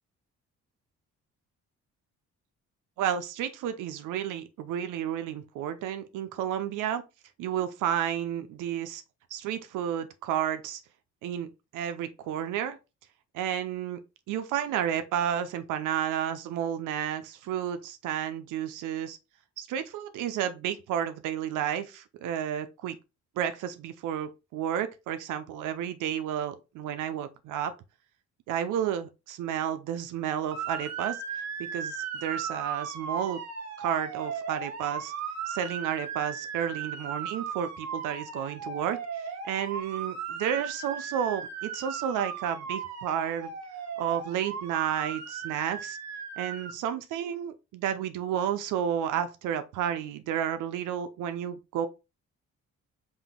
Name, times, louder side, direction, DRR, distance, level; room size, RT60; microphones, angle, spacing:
voice 1, 3.0-7.0 7.4-9.0 9.3-10.8 11.2-11.5 11.7-12.8 13.3-14.0 14.3-19.2 19.6-23.0 23.4-27.7 28.5-31.2 31.6-33.4 33.8-35.1 35.5-43.5 44.0-46.0 46.4-51.9, right 9 dB, 85° right, 0.6 m, -31 dB
Motor vehicle (road) / Siren, 30.5-46.7, right 6 dB, 60° right, 1.1 m, -37 dB
3.8 x 2.6 x 3.5 m
cardioid pair, 90°, 30 cm